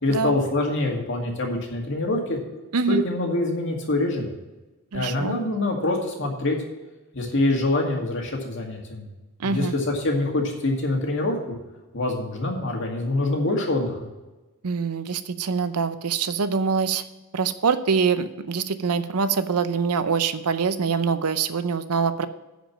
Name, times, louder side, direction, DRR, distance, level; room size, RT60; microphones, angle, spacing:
voice 1, 0.0-2.4 2.9-4.3 4.9-6.6 7.1-9.1 9.4-11.4 11.9-14.1, left 2 dB, 55° left, 1 dB, 2.2 m, -25 dB
voice 2, 2.7-3.1 4.9-5.4 9.4-9.7 14.6-17.0 17.3-22.3, right 5 dB, 85° right, 12 dB, 0.7 m, -24 dB
10.0 x 5.2 x 7.3 m, 1.1 s
head